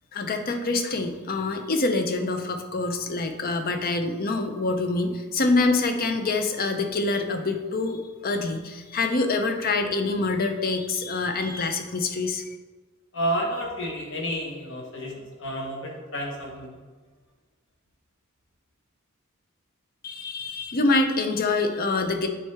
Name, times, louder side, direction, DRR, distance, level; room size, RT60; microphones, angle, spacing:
voice 1, 0.1-12.4 20.0-22.3, left 3 dB, 40° left, 6 dB, 0.6 m, -25 dB
voice 2, 13.1-16.8, equal, 55° left, -1 dB, 1.4 m, -30 dB
7.7 x 4.5 x 3.4 m, 1.3 s
head